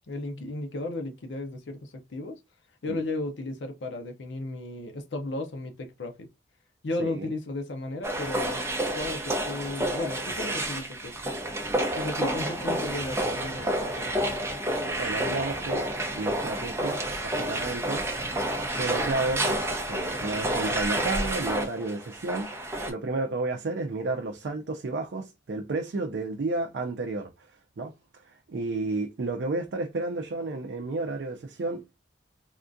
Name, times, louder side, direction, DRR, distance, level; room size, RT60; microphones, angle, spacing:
voice 1, 0.1-2.4 2.8-6.3 6.8-8.7 8.9-11.4 11.9-14.1, left 2 dB, 80° left, 0.6 m, -34 dB
sound 1, 8.0-22.9, right 1 dB, 15° right, 0.6 m, -29 dB
voice 2, 15.0-15.9 16.1-18.1 18.7-22.5 22.9-27.5 27.8-27.9 28.2-32.0, right 2 dB, 70° right, 0.5 m, -32 dB
3.6 x 2.3 x 2.5 m
head